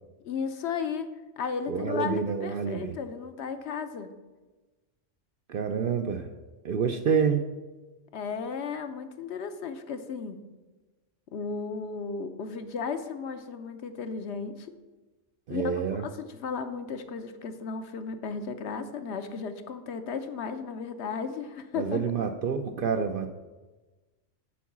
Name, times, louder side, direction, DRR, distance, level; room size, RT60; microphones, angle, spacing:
voice 1, 0.2-1.1 1.4-4.1 8.1-10.4 11.3-14.7 15.5-22.0, left 5 dB, 65° left, 9 dB, 0.9 m, -34 dB
voice 2, 1.7-3.0 5.5-6.3 6.6-7.5 15.5-16.0 21.8-23.3, right 6 dB, 60° right, 7 dB, 0.6 m, -28 dB
8.5 x 4.6 x 7.1 m, 1.2 s
omnidirectional pair, 1.3 m